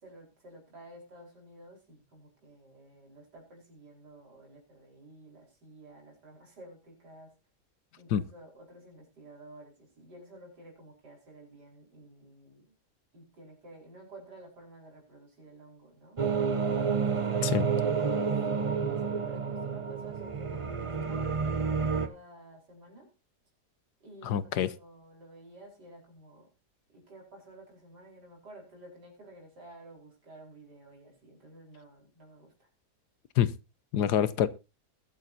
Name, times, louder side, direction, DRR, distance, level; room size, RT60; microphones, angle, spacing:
voice 1, 0.0-7.3 8.0-12.7 13.1-16.4 16.9-23.1 24.0-26.5 26.9-32.7, right 1 dB, 85° right, 5.4 m, -52 dB
sound 1, 16.2-22.1, right 5 dB, 25° right, 0.8 m, -29 dB
voice 2, 24.2-24.7 33.4-33.5 33.9-34.5, left 10 dB, 80° left, 1.4 m, -26 dB
21.0 x 9.1 x 2.7 m
omnidirectional pair, 1.7 m